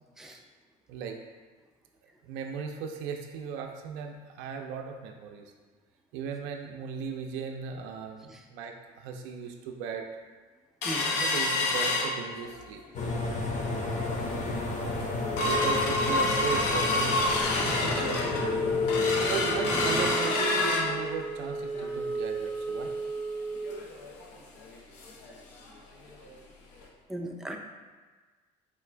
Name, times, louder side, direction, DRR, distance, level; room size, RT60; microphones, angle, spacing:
voice 1, 2.2-5.5 6.1-10.1 11.2-12.8 15.5-17.3 17.6-18.7 19.3-22.9, right 6 dB, 70° right, 3 dB, 0.4 m, -37 dB
sound 1, 10.8-12.7 13.1-13.2 13.5-13.9 14.4-14.5 14.8-25.3 25.6-25.7 26.1-26.3 26.8-26.9, left 2 dB, 85° left, 0.6 m, -28 dB
sound 2, 12.9-20.1, left 2 dB, 35° left, 0.7 m, -33 dB
voice 2, 27.1-27.6, right 1 dB, ahead, 2 dB, 0.4 m, -36 dB
3.7 x 2.4 x 3.2 m, 1.4 s
supercardioid pair, 75°, 20 cm